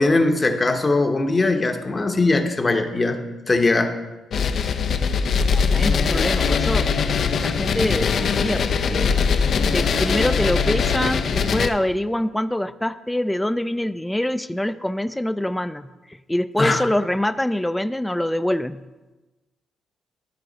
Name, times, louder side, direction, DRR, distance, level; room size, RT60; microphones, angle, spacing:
voice 1, 0.0-3.2 3.5-4.0 16.6-16.8, left 2 dB, 25° left, 6 dB, 0.9 m, -20 dB
sound 1, 4.3-11.7, left 5 dB, 55° left, 0.5 m, -21 dB
voice 2, 5.5-6.9 7.4-9.1 9.7-15.9 16.3-18.8, left 1 dB, 5° left, 13 dB, 0.3 m, -25 dB
13.5 x 4.7 x 4.0 m, 1.1 s
cardioid pair, 90°, 0 cm